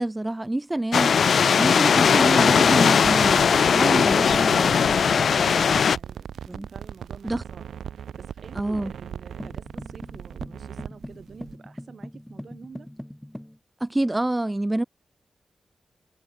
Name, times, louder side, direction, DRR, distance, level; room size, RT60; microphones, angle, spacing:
voice 1, 0.0-4.8 6.5-6.7 7.2-7.4 8.5-8.9 13.8-14.8, right 1 dB, 15° right, 0.4 m, -27 dB
sound 1, 0.9-6.0, left 6 dB, 75° left, 0.3 m, -19 dB
sound 2, 3.0-11.6, right 8 dB, 90° right, 0.9 m, -38 dB
voice 2, 5.3-6.3 6.7-7.6 7.9-12.9, right 5 dB, 60° right, 6.7 m, -48 dB
sound 3, 9.4-13.6, equal, 5° left, 2.6 m, -41 dB
cardioid pair, 70°, 0 cm